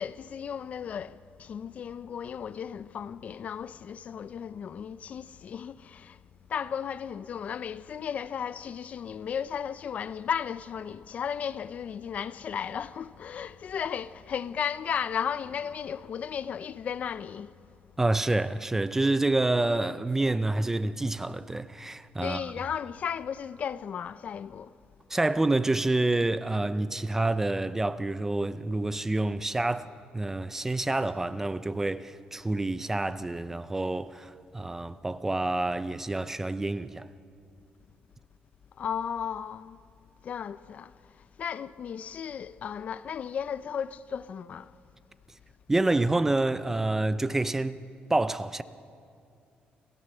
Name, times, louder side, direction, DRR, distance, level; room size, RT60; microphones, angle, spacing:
voice 1, 0.0-6.2 6.5-17.5 22.2-24.7 38.8-39.8 40.2-44.7, left 7 dB, 45° left, 0.4 m, -35 dB
voice 2, 18.0-22.5 25.1-37.1 45.7-47.8 48.1-48.6, right 2 dB, 10° right, 0.5 m, -28 dB
29.0 x 13.0 x 6.8 m
cardioid pair, 155°, 3 cm